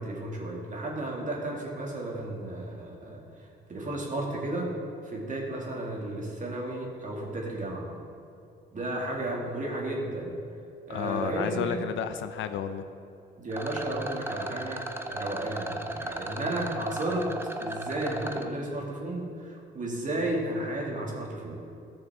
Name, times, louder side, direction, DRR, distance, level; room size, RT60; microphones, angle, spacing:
voice 1, 0.0-4.7 5.0-8.0 8.7-10.4 10.9-11.8 13.4-17.3 17.6-21.7, right 1 dB, 40° right, -2 dB, 2.2 m, -33 dB
voice 2, 10.9-12.9, left 8 dB, 75° left, 9 dB, 0.6 m, -32 dB
Rattle, 13.5-18.5, right 1 dB, 10° right, 0.6 m, -36 dB
14.0 x 6.5 x 3.6 m, 2.7 s
cardioid pair, 90°, 20 cm